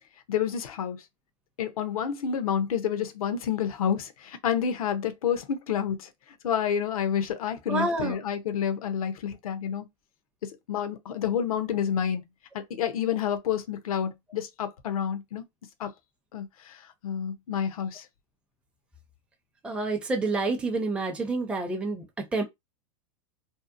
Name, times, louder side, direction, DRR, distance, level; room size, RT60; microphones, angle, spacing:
voice 1, 0.3-1.0 1.6-6.1 6.4-9.9 10.4-12.2 12.5-15.4 15.8-15.9 16.3-18.1, left 8 dB, 90° left, 0.6 m, -29 dB
voice 2, 7.7-8.2 19.6-22.4, right 3 dB, 5° right, 0.5 m, -28 dB
2.7 x 2.1 x 2.5 m
supercardioid pair, 125°, 18 cm